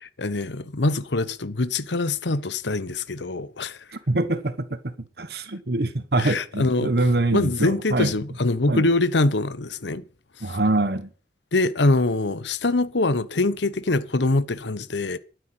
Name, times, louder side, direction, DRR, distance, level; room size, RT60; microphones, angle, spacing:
voice 1, 0.0-3.8 6.2-6.9 7.3-10.0 10.4-10.6 11.5-15.2, left 2 dB, 85° left, 1.0 m, -24 dB
voice 2, 3.9-8.1 8.7-8.8 10.4-11.1, right 2 dB, 65° right, 1.2 m, -24 dB
13.0 x 9.3 x 8.0 m
head